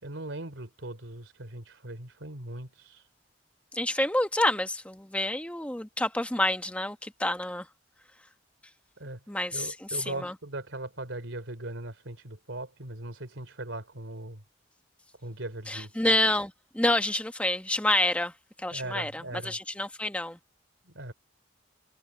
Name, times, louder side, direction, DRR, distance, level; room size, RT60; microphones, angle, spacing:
voice 1, 0.0-3.0 9.0-9.2 9.5-14.4 15.2-15.9 18.7-19.5 20.8-21.1, right 2 dB, 90° right, 3.3 m, -39 dB
voice 2, 3.7-7.7 9.3-10.3 15.7-18.3 18.6-20.4, left 1 dB, 5° left, 1.0 m, -28 dB
head